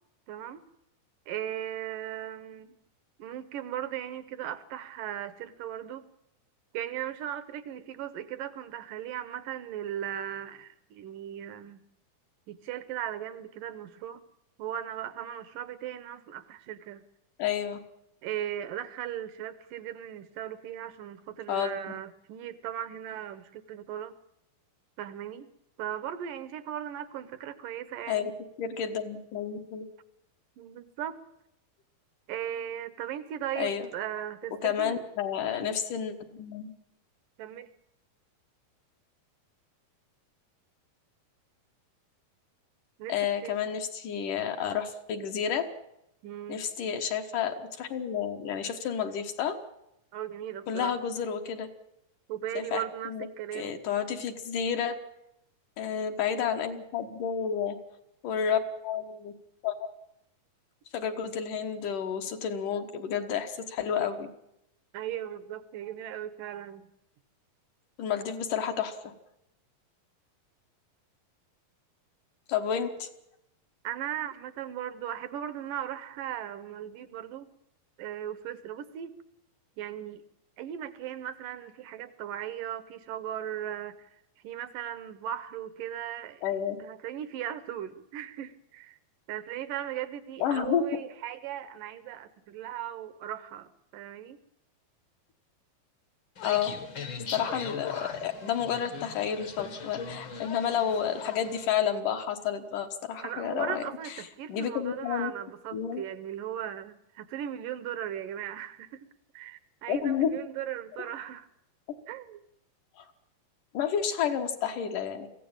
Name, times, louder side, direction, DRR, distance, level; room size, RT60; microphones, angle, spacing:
voice 1, 0.3-0.6 1.3-2.7 3.2-6.1 6.7-11.8 12.5-14.2 14.6-17.0 18.2-24.2 25.0-25.5 25.8-28.3 30.6-31.2 32.3-35.0 37.4-37.7 43.0-43.2 43.4-43.6 46.2-46.6 50.1-51.0 52.3-53.8 64.9-66.9 73.8-77.5 78.0-79.2 79.8-80.2 80.6-86.4 86.8-89.0 89.3-94.4 103.2-109.1 109.3-111.5 112.1-112.4, right 10 dB, 70° right, 14 dB, 2.3 m, -37 dB
voice 2, 17.4-17.8 21.5-21.8 28.1-28.3 28.6-29.8 33.6-33.9 34.6-36.7 43.1-45.7 46.5-49.6 50.7-51.7 52.6-53.3 53.5-55.0 55.8-57.8 58.2-59.3 59.6-59.9 60.9-64.3 68.0-69.1 72.5-73.1 86.4-86.8 90.4-90.9 96.4-96.7 97.3-104.1 104.5-105.3 105.7-106.0 109.9-110.3 113.0-113.1 113.7-115.3, left 8 dB, 65° left, 5 dB, 2.7 m, -30 dB
sound 1, 96.4-101.7, left 6 dB, 45° left, 1.6 m, -40 dB
22.5 x 16.0 x 8.9 m, 0.83 s
omnidirectional pair, 4.3 m